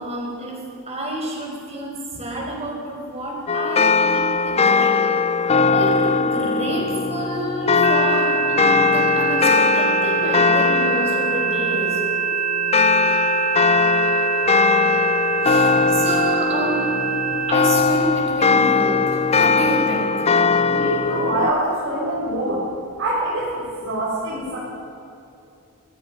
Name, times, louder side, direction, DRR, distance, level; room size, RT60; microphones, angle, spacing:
voice 1, 0.0-5.0 5.5-12.0 15.4-16.9 17.5-20.3, right 1 dB, 30° right, -1 dB, 5.4 m, -28 dB
sound 1, 3.5-21.5, left 4 dB, 30° left, 0.5 m, -20 dB
sound 2, 7.8-17.5, right 8 dB, 90° right, 1.4 m, -24 dB
voice 2, 20.7-22.6 23.0-24.6, right 1 dB, 55° right, -8 dB, 6.7 m, -24 dB
24.5 x 19.5 x 5.6 m, 2.7 s
head